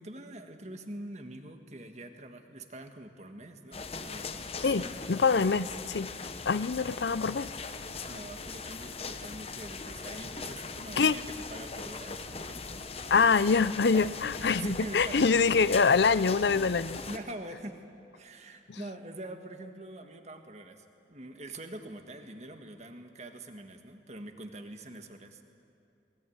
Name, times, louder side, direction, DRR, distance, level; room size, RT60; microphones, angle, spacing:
voice 1, 0.0-5.1 7.7-12.9 14.0-14.1 14.4-15.3 16.7-17.8 18.1-25.4, right 1 dB, 40° right, 6 dB, 1.6 m, -44 dB
sound 1, 3.7-17.2, left 4 dB, 35° left, 1.0 m, -40 dB
voice 2, 5.1-6.1 6.5-7.5 11.0-11.2 13.1-17.0 18.7-18.8, left 5 dB, 70° left, 16 dB, 0.6 m, -25 dB
21.0 x 20.0 x 9.5 m, 2.6 s
head